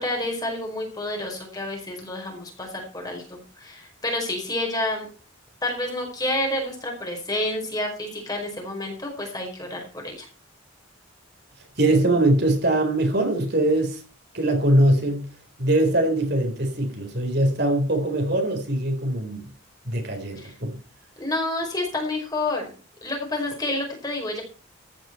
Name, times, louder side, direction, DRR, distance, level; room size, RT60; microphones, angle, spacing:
voice 1, 0.0-5.1 5.6-10.3 20.4-20.5 21.2-22.6 23.0-24.4, left 1 dB, 20° left, 4.9 m, -29 dB
voice 2, 11.8-14.0 14.3-15.3 15.6-19.5 19.8-20.8, right 1 dB, 55° right, 4.4 m, -22 dB
15.0 x 10.5 x 4.6 m
head